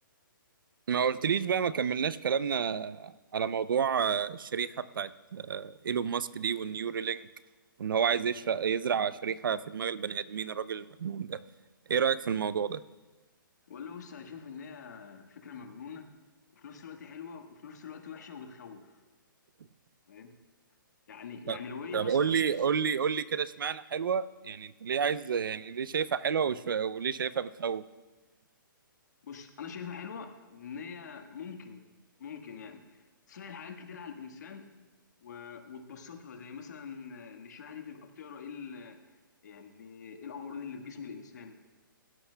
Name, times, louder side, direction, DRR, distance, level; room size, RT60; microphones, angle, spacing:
voice 1, 0.9-4.7 5.0-7.3 7.8-11.4 11.9-12.8 21.5-21.6 21.9-27.8, right 7 dB, 75° right, 15 dB, 0.6 m, -30 dB
voice 2, 13.7-16.1 16.5-19.0 20.1-20.3 21.1-22.6 29.2-31.9 32.2-34.7 35.2-39.0 39.4-41.5, left 6 dB, 55° left, 5 dB, 1.5 m, -44 dB
17.5 x 16.0 x 2.3 m, 1.2 s
hypercardioid pair, 170°, 11 cm